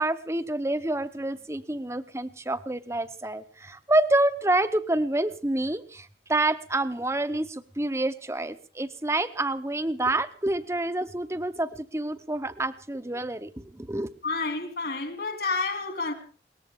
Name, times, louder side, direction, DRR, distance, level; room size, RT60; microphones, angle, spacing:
voice 1, 0.0-14.1, right 2 dB, 15° right, 0.8 m, -28 dB
voice 2, 14.2-16.1, left 3 dB, 60° left, 2.8 m, -29 dB
21.5 x 18.5 x 3.6 m
head